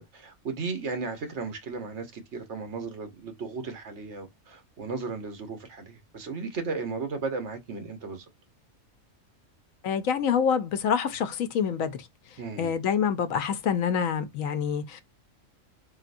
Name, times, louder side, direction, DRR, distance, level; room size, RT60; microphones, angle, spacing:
voice 1, 0.0-8.2 12.4-12.7, right 4 dB, 60° right, 1.3 m, -35 dB
voice 2, 9.8-12.1 12.6-15.0, left 7 dB, 85° left, 1.1 m, -26 dB
4.2 x 3.6 x 2.5 m
omnidirectional pair, 1.3 m